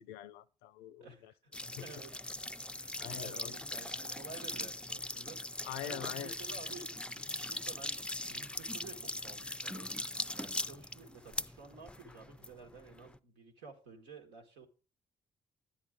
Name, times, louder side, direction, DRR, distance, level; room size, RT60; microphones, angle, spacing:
voice 1, 0.0-1.3 1.8-1.9 3.0-3.5 5.6-6.3, left 12 dB, 85° left, 0.5 m, -44 dB
voice 2, 1.0-1.5 1.8-2.2 2.7-10.0 10.4-14.7, right 4 dB, 90° right, 1.6 m, -52 dB
sound 1, 1.5-13.2, left 1 dB, 5° left, 0.4 m, -41 dB
10.5 x 8.7 x 3.7 m
hypercardioid pair, 50°, 16 cm